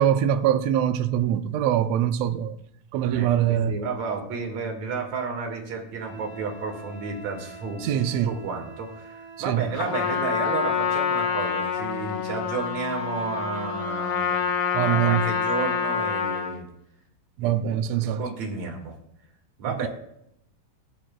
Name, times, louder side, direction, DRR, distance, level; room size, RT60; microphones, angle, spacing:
voice 1, 0.0-2.5 2.9-3.8 7.8-8.3 9.5-9.7 14.7-15.3 17.4-18.2 19.8-19.9, right 10 dB, 85° right, 1.5 m, -23 dB
voice 2, 3.1-14.5 14.8-16.7 17.4-17.8 18.0-19.0 19.6-19.9, right 5 dB, 60° right, 3.2 m, -32 dB
Wind instrument woodwind instrument, 6.0-10.5, right 3 dB, 45° left, 3.3 m, -44 dB
Trumpet, 9.7-16.6, left 7 dB, 85° left, 2.8 m, -27 dB
19.5 x 10.0 x 2.3 m
omnidirectional pair, 3.8 m